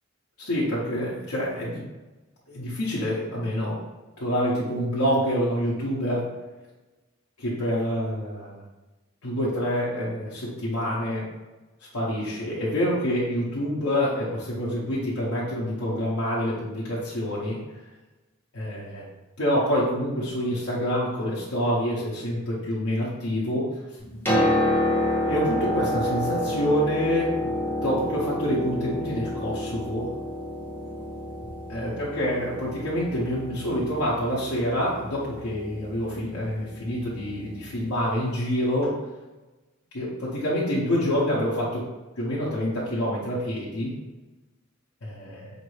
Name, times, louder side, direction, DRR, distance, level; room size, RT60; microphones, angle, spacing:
voice 1, 0.4-1.8 2.5-3.8 4.2-6.3 7.4-8.6 9.2-11.2 11.9-17.6 18.5-19.0 19.4-23.7 25.3-27.5 27.8-30.1 31.7-38.9 39.9-41.8 42.2-43.9 45.0-45.5, equal, 80° left, -7 dB, 0.9 m, -27 dB
Piano, 24.0-37.7 38.8-38.9, left 1 dB, 10° left, 1.0 m, -29 dB
5.0 x 2.6 x 3.2 m, 1.1 s
head